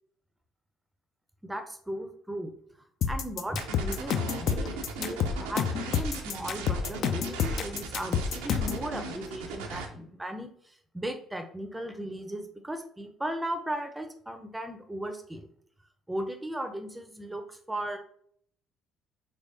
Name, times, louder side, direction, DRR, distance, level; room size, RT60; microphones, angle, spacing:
voice 1, 1.4-2.5 3.1-15.5 16.1-18.0, right 1 dB, 10° right, 6 dB, 0.5 m, -37 dB
sound 1, 3.0-8.8, left 7 dB, 55° left, 0.3 m, -28 dB
sound 2, 3.6-9.9, right 4 dB, 75° right, 0.4 m, -38 dB
3.3 x 3.2 x 2.6 m, 0.64 s
hypercardioid pair, 55°, 0 cm